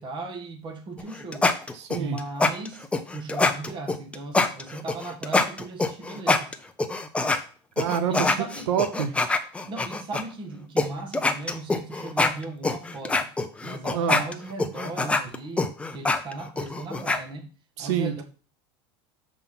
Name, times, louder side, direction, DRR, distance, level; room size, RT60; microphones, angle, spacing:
voice 1, 0.0-1.5 2.0-6.5 8.1-8.7 9.7-13.3 13.6-17.5 17.8-18.2, right 3 dB, 35° right, 1.5 m, -37 dB
sound 1, 1.0-7.4 7.8-10.2 10.8-10.9 11.1-17.2, left 3 dB, 10° left, 0.6 m, -24 dB
voice 2, 1.7-2.2 7.8-8.3 8.7-9.1 13.9-14.2 17.8-18.2, right 8 dB, 90° right, 0.8 m, -26 dB
7.1 x 3.7 x 5.7 m
supercardioid pair, 130°, 14 cm